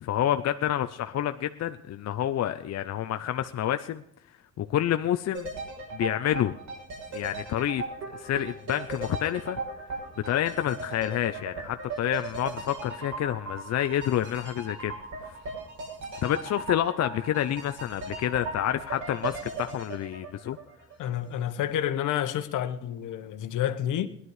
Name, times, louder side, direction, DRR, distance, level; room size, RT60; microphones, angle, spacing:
voice 1, 0.0-4.0 4.6-5.5 5.9-6.5 7.1-7.8 8.1-9.6 10.2-14.9 15.3-15.4 16.2-20.6, left 11 dB, 60° left, 0.7 m, -28 dB
sound 1, 5.3-21.3 21.6-21.7, right 3 dB, 70° right, 6.2 m, -38 dB
voice 2, 21.0-24.1, left 11 dB, 80° left, 1.2 m, -29 dB
17.5 x 11.0 x 4.8 m
cardioid pair, 90°, 30 cm